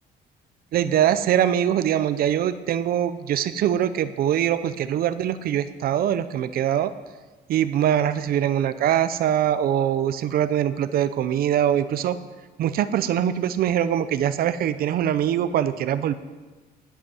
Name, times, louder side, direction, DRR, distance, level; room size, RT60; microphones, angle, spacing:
voice 1, 0.7-6.9 7.5-12.2 12.6-16.1, right 10 dB, 65° right, 13 dB, 0.6 m, -23 dB
11.0 x 8.0 x 7.8 m, 1.3 s
cardioid pair, 130°, 17 cm